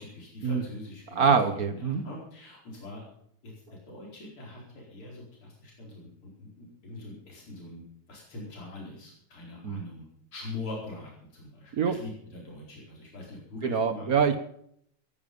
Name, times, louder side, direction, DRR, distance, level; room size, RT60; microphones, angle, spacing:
voice 1, 0.0-3.0 3.4-10.0 10.3-14.1, left 2 dB, 75° left, -3 dB, 5.4 m, -43 dB
voice 2, 1.2-2.0 9.6-9.8 11.8-11.9 13.6-14.4, right 6 dB, 50° right, 10 dB, 1.4 m, -24 dB
17.5 x 10.5 x 5.5 m, 0.68 s
omnidirectional pair, 2.4 m